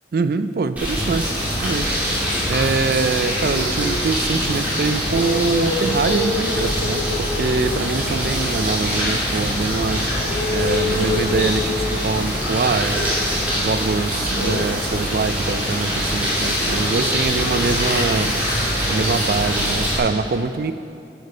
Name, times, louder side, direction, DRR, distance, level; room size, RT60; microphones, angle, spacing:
voice 1, 0.1-1.3 1.6-2.0 2.5-13.2 13.5-20.7, right 4 dB, 55° right, 11 dB, 0.3 m, -24 dB
sound 1, 0.8-20.0, equal, 10° right, 2.3 m, -23 dB
sound 2, 1.3-19.9, right 1 dB, 40° right, 2.0 m, -38 dB
sound 3, 3.0-4.2 5.0-9.1 10.1-12.9 14.3-14.7 16.6-18.4, left 2 dB, 85° left, 0.8 m, -29 dB
10.5 x 6.6 x 4.9 m, 2.6 s
head